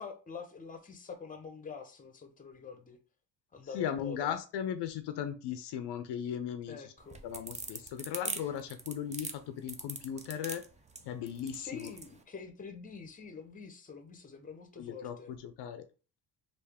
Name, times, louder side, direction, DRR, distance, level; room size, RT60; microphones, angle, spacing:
voice 1, 0.0-3.0 3.5-4.4 6.7-7.2 11.6-15.4, left 5 dB, 20° left, 0.7 m, -46 dB
voice 2, 3.7-6.9 7.2-10.6 11.0-11.9 14.8-15.8, left 9 dB, 65° left, 0.5 m, -37 dB
sound 1, 7.0-12.1, right 3 dB, 15° right, 0.5 m, -41 dB
3.3 x 2.5 x 3.4 m
cardioid pair, 90°, 45 cm